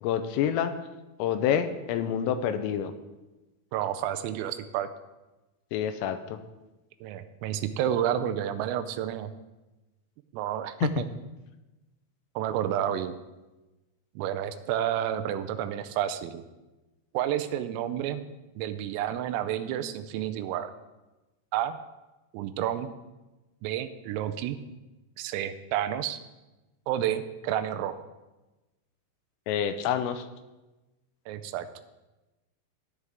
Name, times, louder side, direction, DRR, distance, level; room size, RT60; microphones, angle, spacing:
voice 1, 0.0-0.8 1.2-2.9 5.7-6.4 10.8-10.9 29.5-30.3, left 9 dB, 85° left, 9 dB, 3.2 m, -27 dB
voice 2, 3.7-4.9 7.0-9.3 10.3-11.1 12.4-13.2 14.2-16.4 17.1-18.2 18.6-20.7 21.5-21.8 22.3-22.9 23.6-24.6 25.2-26.2 26.9-28.0 31.3-31.7, right 10 dB, 85° right, 10 dB, 3.3 m, -30 dB
15.0 x 9.8 x 3.6 m, 1.1 s
omnidirectional pair, 6.0 m